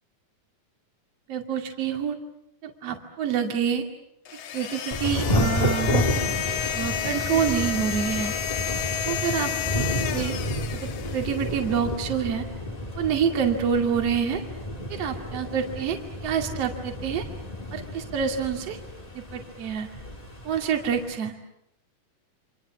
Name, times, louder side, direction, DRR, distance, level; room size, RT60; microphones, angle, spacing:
voice 1, 1.3-2.2 2.6-3.9 4.5-6.3 6.7-8.3 9.0-9.5 10.1-10.4 10.7-12.5 13.0-14.4 14.9-17.3 17.7-18.8 19.1-19.9 20.5-21.3, right 7 dB, 50° right, 4 dB, 3.3 m, -27 dB
sound 1, 4.3-11.6, left 10 dB, 60° left, 2.2 m, -31 dB
Thunder / Rain, 4.9-21.2, left 1 dB, 15° left, 2.3 m, -31 dB
29.0 x 26.5 x 7.4 m, 0.77 s
omnidirectional pair, 3.6 m